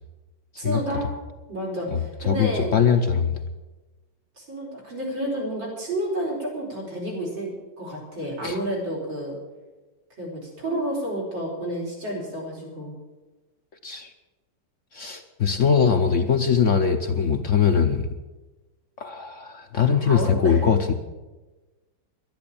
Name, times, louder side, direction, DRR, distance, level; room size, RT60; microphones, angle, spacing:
voice 1, 0.6-1.1 1.5-2.8 4.4-9.4 10.2-12.9 15.5-15.7 19.7-20.7, right 1 dB, 90° right, -2 dB, 5.4 m, -30 dB
voice 2, 1.9-3.4 8.4-8.6 13.8-14.1 14.9-18.1 19.0-20.9, left 6 dB, 55° left, 6 dB, 0.9 m, -21 dB
11.5 x 10.5 x 8.5 m, 1.2 s
omnidirectional pair, 2.0 m